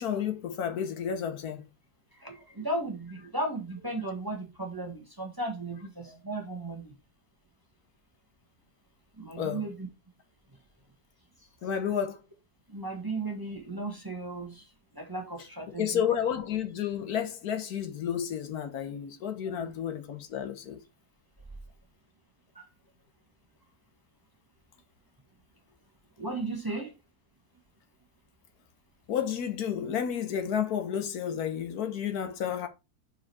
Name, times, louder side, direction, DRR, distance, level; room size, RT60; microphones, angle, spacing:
voice 1, 0.0-1.7 9.4-9.7 11.6-12.2 15.8-20.8 29.1-32.7, left 8 dB, 70° left, 1.3 m, -31 dB
voice 2, 2.2-6.9 9.2-9.9 12.7-14.6 14.9-16.0 22.5-22.7 26.2-26.9, right 2 dB, 15° right, 1.3 m, -35 dB
5.0 x 4.8 x 4.7 m
omnidirectional pair, 1.7 m